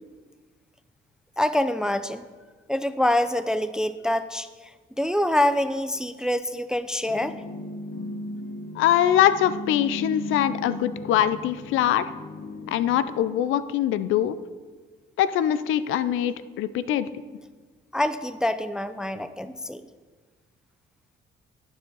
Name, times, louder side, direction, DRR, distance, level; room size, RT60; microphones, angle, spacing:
voice 1, 1.4-2.2 2.7-4.5 5.0-7.4 17.9-19.8, left 1 dB, 5° right, 12 dB, 0.4 m, -25 dB
sound 1, 7.1-13.5, left 1 dB, 45° left, 0.8 m, -37 dB
voice 2, 8.8-12.1 12.7-14.4 15.2-17.1, left 11 dB, 85° left, 15 dB, 0.5 m, -23 dB
12.0 x 7.0 x 3.9 m, 1.4 s
cardioid pair, 90°, 20 cm